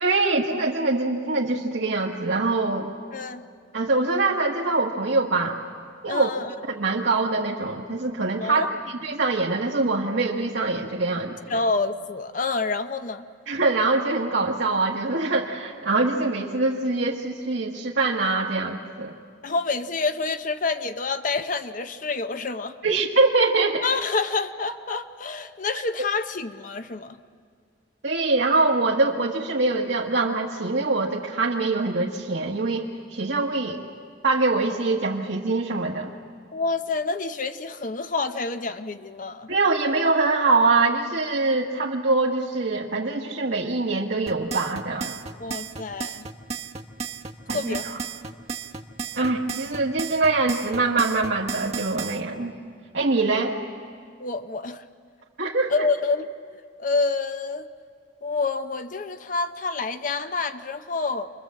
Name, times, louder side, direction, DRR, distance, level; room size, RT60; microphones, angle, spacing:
voice 1, 0.0-2.9 3.7-5.6 6.0-6.3 6.7-8.7 9.0-11.6 13.5-19.1 22.8-23.8 28.0-33.8 34.2-36.1 39.5-45.1 47.5-47.8 49.1-52.5 52.9-53.6 55.4-55.7, right 3 dB, 70° right, -3 dB, 1.4 m, -24 dB
voice 2, 3.1-3.5 6.1-6.5 8.4-8.8 11.5-13.2 19.4-23.0 23.8-27.2 36.5-39.5 45.4-46.2 47.5-47.9 54.2-54.8 55.7-57.7 58.2-61.3, left 4 dB, 45° left, 9 dB, 0.7 m, -28 dB
sound 1, 44.3-52.2, right 5 dB, 35° right, 1.1 m, -33 dB
27.5 x 22.5 x 7.5 m, 2.1 s
head